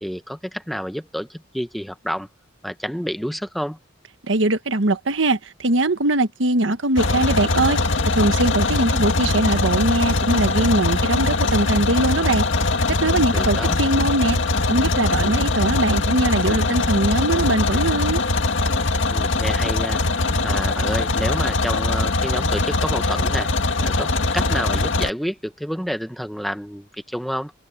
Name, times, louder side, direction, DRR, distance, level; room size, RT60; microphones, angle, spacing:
voice 1, 0.0-2.3 2.6-3.8 13.3-13.8 19.1-20.0 20.4-23.5 23.8-27.5, equal, ahead, 1.0 m, -29 dB
voice 2, 4.3-7.8 8.1-12.4 12.9-14.4 14.7-18.2, right 2 dB, 75° right, 1.3 m, -21 dB
sound 1, 7.0-25.1, left 2 dB, 80° left, 2.0 m, -21 dB
head